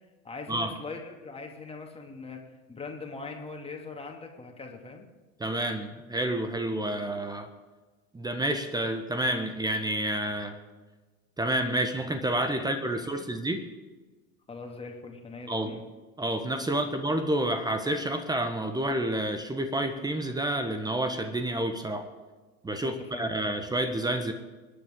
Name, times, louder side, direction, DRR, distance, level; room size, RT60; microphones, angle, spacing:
voice 1, 0.2-2.4 2.7-5.1 12.6-12.7 13.0-13.3 14.5-15.8 16.8-16.9 22.8-23.5, left 4 dB, 15° left, 2 dB, 2.4 m, -41 dB
voice 2, 5.4-7.5 8.1-10.5 11.4-13.6 15.5-15.8 16.2-22.1 22.6-24.3, right 1 dB, 10° right, 8 dB, 1.2 m, -29 dB
25.5 x 10.0 x 3.8 m, 1.3 s
figure-of-eight pair, 80°, 41 cm